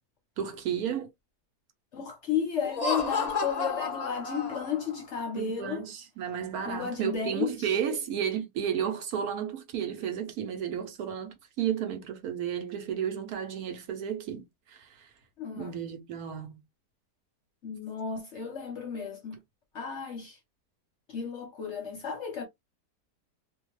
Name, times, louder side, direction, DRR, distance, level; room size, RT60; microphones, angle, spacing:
voice 1, 0.4-1.1 5.4-15.1 15.6-16.6, right 8 dB, 70° right, 1.0 m, -33 dB
voice 2, 1.9-5.8 6.7-7.7 15.4-15.8 17.6-19.4 19.7-20.4 21.1-22.4, left 7 dB, 55° left, 0.8 m, -33 dB
Laughter, 2.6-5.0, left 4 dB, 80° left, 0.3 m, -32 dB
2.7 x 2.2 x 3.0 m
omnidirectional pair, 1.8 m